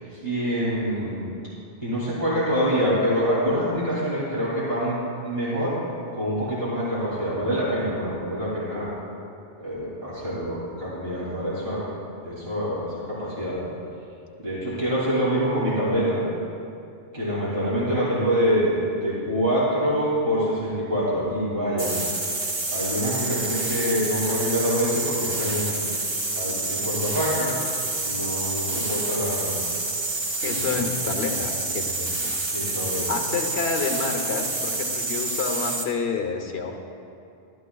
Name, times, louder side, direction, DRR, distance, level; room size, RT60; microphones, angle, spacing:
voice 1, 0.1-1.2 1.8-5.8 6.1-8.9 9.6-11.8 12.2-13.6 14.4-16.2 17.1-21.9 22.7-25.8 26.3-27.6 28.0-29.6 30.6-30.7 32.4-33.2, equal, 65° right, -9 dB, 3.0 m, -25 dB
sound 1, 21.8-35.9, right 2 dB, 30° right, 0.7 m, -28 dB
voice 2, 30.4-32.4 33.1-36.7, left 4 dB, 80° left, 3 dB, 1.2 m, -29 dB
13.0 x 12.5 x 2.3 m, 2.5 s
omnidirectional pair, 1.1 m